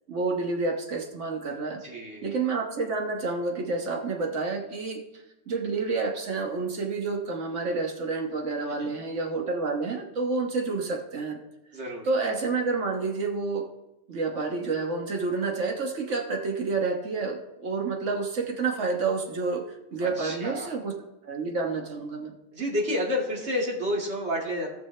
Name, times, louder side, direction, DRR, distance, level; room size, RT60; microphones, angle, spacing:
voice 1, 0.1-1.8 2.2-5.0 5.5-11.4 12.0-13.7 14.1-19.6 19.9-20.9 21.2-22.3, right 3 dB, 90° right, 2 dB, 1.6 m, -29 dB
voice 2, 1.7-2.2 8.7-8.9 11.7-12.1 20.0-20.7 22.5-24.7, left 1 dB, 70° right, -3 dB, 2.5 m, -30 dB
17.5 x 6.2 x 3.3 m, 0.93 s
omnidirectional pair, 1.2 m